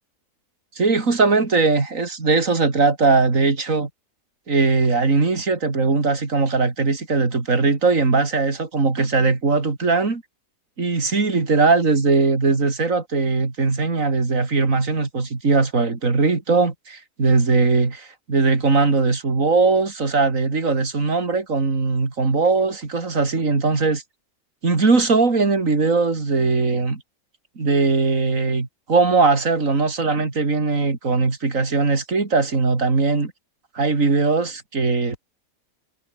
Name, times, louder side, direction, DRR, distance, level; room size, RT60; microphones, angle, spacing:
voice 1, 0.8-3.9 4.5-10.2 10.8-24.0 24.6-27.0 27.6-33.3 33.8-35.2, right 4 dB, 75° right, 3.5 m, -20 dB
omnidirectional pair, 1.4 m